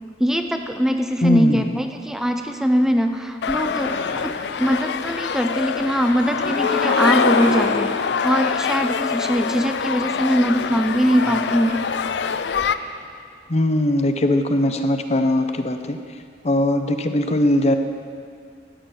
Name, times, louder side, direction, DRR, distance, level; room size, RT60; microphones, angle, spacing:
voice 1, 0.2-4.3 4.6-11.8, equal, 5° right, 5 dB, 0.5 m, -21 dB
voice 2, 1.2-1.7 13.5-16.0 16.4-17.8, left 1 dB, 35° left, 7 dB, 0.7 m, -20 dB
sound 1, 3.4-12.7, left 6 dB, 70° left, 0.4 m, -24 dB
sound 2, 3.5-4.6 6.1-7.9 8.4-8.5 10.4-13.0, right 1 dB, 75° right, 3.3 m, -34 dB
13.5 x 9.4 x 4.5 m, 2.2 s
head